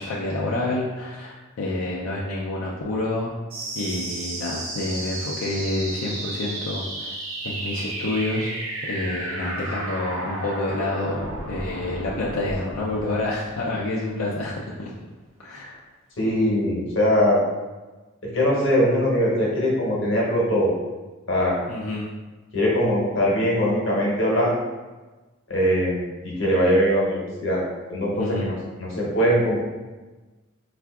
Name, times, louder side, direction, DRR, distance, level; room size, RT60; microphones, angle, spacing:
voice 1, 0.0-3.3 3.8-7.1 7.4-8.5 8.8-14.5 14.8-14.9 15.4-15.8 21.7-22.1 28.1-28.5, left 2 dB, 90° left, -5 dB, 0.4 m, -28 dB
sound 1, 3.5-14.5, right 1 dB, 75° right, 0.7 m, -33 dB
voice 2, 16.2-17.4 18.3-20.7 21.3-21.6 22.5-24.5 25.5-27.6 27.9-29.6, equal, 65° left, -4 dB, 0.9 m, -21 dB
4.3 x 2.4 x 2.3 m, 1.2 s
head